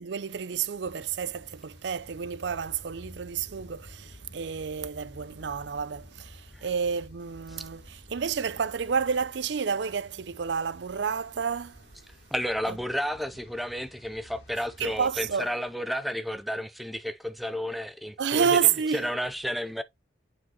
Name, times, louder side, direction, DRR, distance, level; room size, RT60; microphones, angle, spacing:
voice 1, 0.0-11.8 12.7-12.8 14.8-15.5 18.2-19.1, right 6 dB, 65° right, 0.5 m, -30 dB
sound 1, 0.8-15.3, left 1 dB, 55° left, 2.9 m, -51 dB
voice 2, 12.3-18.6 18.9-19.8, equal, ahead, 0.4 m, -32 dB
8.2 x 4.9 x 2.8 m
head